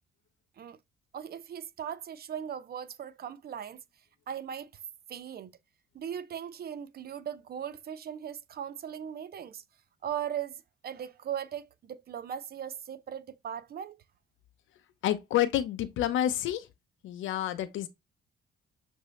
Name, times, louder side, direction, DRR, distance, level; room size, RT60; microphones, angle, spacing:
voice 1, 1.1-3.8 4.3-4.7 5.1-5.5 5.9-9.6 10.0-14.0, right 9 dB, 50° right, 0.5 m, -38 dB
voice 2, 15.0-16.7 17.0-17.9, left 12 dB, 80° left, 0.6 m, -29 dB
6.4 x 2.7 x 3.0 m
cardioid pair, 90°, 20 cm